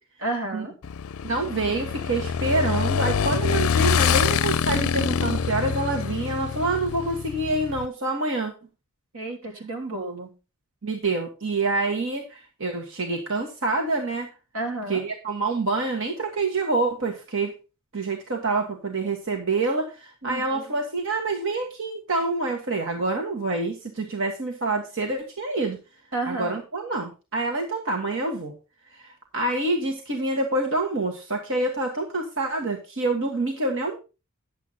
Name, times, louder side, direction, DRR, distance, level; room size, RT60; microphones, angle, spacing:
voice 1, 0.2-0.8 3.8-4.0 9.1-10.3 14.5-15.0 20.2-20.6 26.1-26.6, right 2 dB, 90° right, 2 dB, 2.9 m, -31 dB
Motorcycle / Engine, 0.8-7.9, left 6 dB, 75° left, 0.5 m, -25 dB
voice 2, 1.2-8.5 10.8-14.3 14.9-17.5 17.9-25.8 26.3-28.5 28.9-34.0, right 2 dB, 60° right, 2 dB, 1.6 m, -27 dB
10.5 x 7.7 x 4.0 m, 0.30 s
head